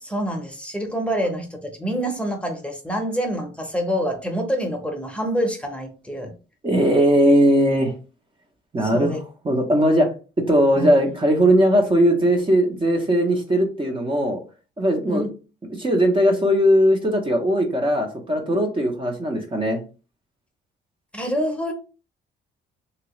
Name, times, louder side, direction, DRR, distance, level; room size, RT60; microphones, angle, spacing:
voice 1, 0.0-6.3 8.8-9.2 10.7-10.9 15.1-15.3 21.1-21.7, equal, 5° left, 2 dB, 0.9 m, -26 dB
voice 2, 6.6-7.9 8.7-9.2 9.4-10.1 10.5-14.4 14.8-15.3 15.7-19.8, equal, 25° right, 2 dB, 0.8 m, -19 dB
3.0 x 2.9 x 3.0 m, 0.34 s
cardioid pair, 90°, 20 cm